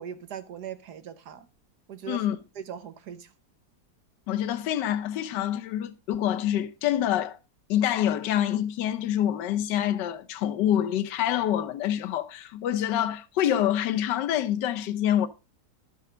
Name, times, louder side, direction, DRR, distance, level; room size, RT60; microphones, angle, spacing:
voice 1, 0.0-1.5 1.9-2.3 2.6-3.3, right 8 dB, 60° right, 1.4 m, -39 dB
voice 2, 2.1-2.4 4.3-7.4 7.7-15.3, left 11 dB, 70° left, 1.4 m, -26 dB
12.5 x 5.6 x 5.0 m
omnidirectional pair, 2.1 m